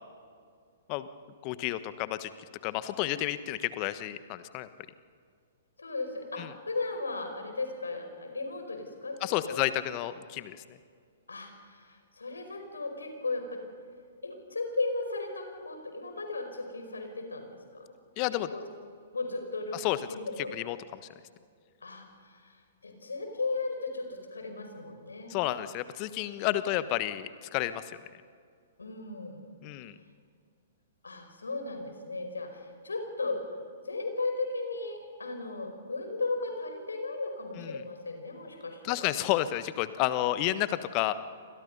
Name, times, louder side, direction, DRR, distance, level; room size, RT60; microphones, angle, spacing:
voice 1, 1.4-2.3 2.6-4.7 6.4-6.5 9.2-10.8 18.2-18.5 19.7-20.0 20.5-21.0 25.3-28.0 29.6-29.9 37.6-37.8 38.8-41.1, left 15 dB, 35° left, 13 dB, 1.3 m, -31 dB
voice 2, 5.8-9.2 9.5-9.6 11.3-13.6 14.2-17.9 18.5-18.6 19.1-19.8 20.1-20.5 21.8-22.4 22.8-25.3 28.8-29.5 31.0-33.4 33.8-39.0, left 3 dB, 75° left, 5 dB, 5.2 m, -36 dB
29.0 x 26.0 x 5.5 m, 2.2 s
figure-of-eight pair, 115°, 0 cm